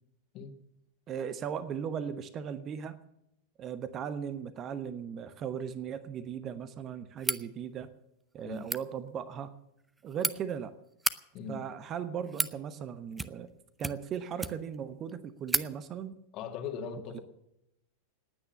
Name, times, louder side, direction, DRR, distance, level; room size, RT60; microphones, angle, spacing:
voice 1, 1.1-3.0 3.6-7.9 8.3-9.5 10.0-10.7 11.5-13.5 13.8-16.1 17.1-17.2, right 8 dB, 30° right, 13 dB, 1.0 m, -37 dB
sound 1, 7.2-7.5 8.5-8.8 9.8-10.3 10.9-11.2 12.0-12.6 13.1-13.5 13.8-14.8 15.1-15.2 15.5-15.7, right 3 dB, 10° right, 0.7 m, -32 dB
voice 2, 16.3-17.2, left 6 dB, 40° left, 4 dB, 2.0 m, -39 dB
18.5 x 9.4 x 6.8 m, 0.82 s
figure-of-eight pair, 90°, 0 cm